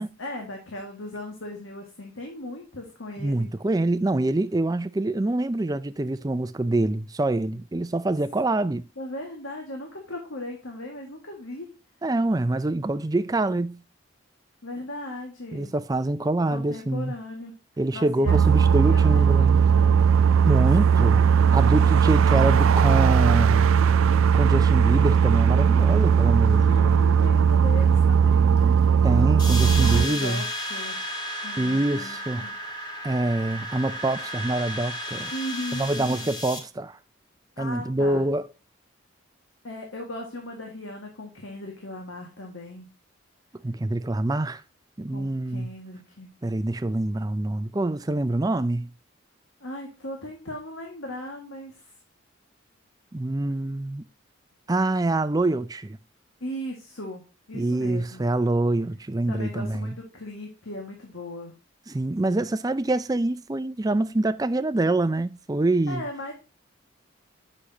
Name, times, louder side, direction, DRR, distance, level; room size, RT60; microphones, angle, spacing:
voice 1, 0.2-3.5 9.0-11.7 14.6-15.7 16.5-17.5 17.9-20.0 26.6-28.8 29.8-31.1 31.4-32.6 35.2-36.3 37.6-38.3 39.6-42.9 45.1-46.3 49.6-51.9 56.4-57.2 57.5-58.3 59.3-61.5 65.9-66.3, left 1 dB, 80° left, 1.9 m, -38 dB
voice 2, 3.2-8.8 12.0-13.8 15.5-17.1 17.8-19.6 20.5-21.2 21.5-23.6 24.3-27.0 29.0-30.4 31.6-32.5 33.0-35.3 35.7-37.0 37.6-38.5 43.6-44.6 45.0-45.7 46.4-48.9 53.1-54.0 54.7-56.0 57.5-59.9 61.9-66.0, right 2 dB, 20° right, 0.4 m, -25 dB
sound 1, 18.3-30.1, right 7 dB, 85° right, 0.4 m, -18 dB
sound 2, 29.4-36.6, left 1 dB, 20° left, 1.5 m, -33 dB
8.3 x 6.3 x 2.8 m
head